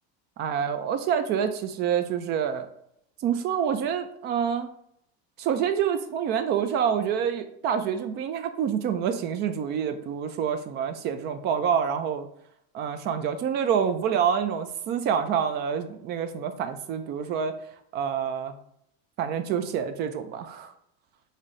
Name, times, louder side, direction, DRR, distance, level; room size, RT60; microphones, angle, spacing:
voice 1, 0.4-2.7 3.2-4.7 5.4-12.3 12.7-17.5 17.9-18.5 19.2-20.7, right 8 dB, 35° right, 9 dB, 0.4 m, -27 dB
3.2 x 2.7 x 3.8 m, 0.73 s
supercardioid pair, 140°, 30 cm